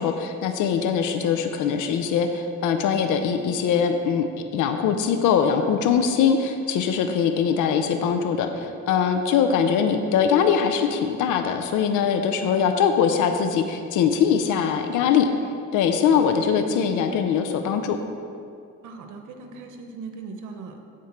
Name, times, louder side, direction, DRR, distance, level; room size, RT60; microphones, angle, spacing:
voice 1, 0.0-4.3 4.5-15.3 15.7-18.0, left 7 dB, 85° left, 6 dB, 0.6 m, -22 dB
voice 2, 18.8-20.8, right 4 dB, 85° right, 5 dB, 0.9 m, -39 dB
8.4 x 4.6 x 5.7 m, 2.4 s
cardioid pair, 90°, 30 cm